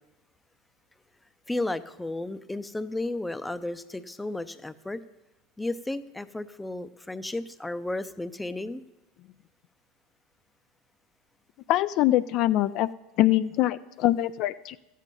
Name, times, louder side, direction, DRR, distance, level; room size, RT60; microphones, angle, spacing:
voice 1, 1.5-5.0 5.6-8.8, left 2 dB, 10° left, 13 dB, 0.6 m, -33 dB
voice 2, 11.7-12.9 13.2-14.8, left 14 dB, 55° left, 13 dB, 0.3 m, -23 dB
13.5 x 8.3 x 5.4 m, 0.98 s
hypercardioid pair, 100°, 0 cm